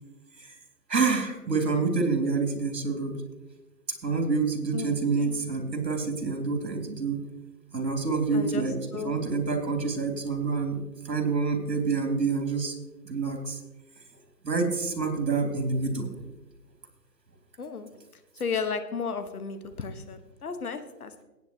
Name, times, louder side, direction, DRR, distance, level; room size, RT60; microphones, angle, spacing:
voice 1, 0.9-3.2 4.0-7.2 7.7-8.8 9.0-12.7 13.0-13.6 14.4-16.1, right 4 dB, 80° right, 3 dB, 3.1 m, -27 dB
voice 2, 4.7-5.4 8.3-8.7 8.9-9.1 17.6-17.9 18.4-21.2, left 5 dB, 60° left, 9 dB, 1.5 m, -34 dB
18.0 x 9.2 x 3.0 m, 1.1 s
hypercardioid pair, 160°, 49 cm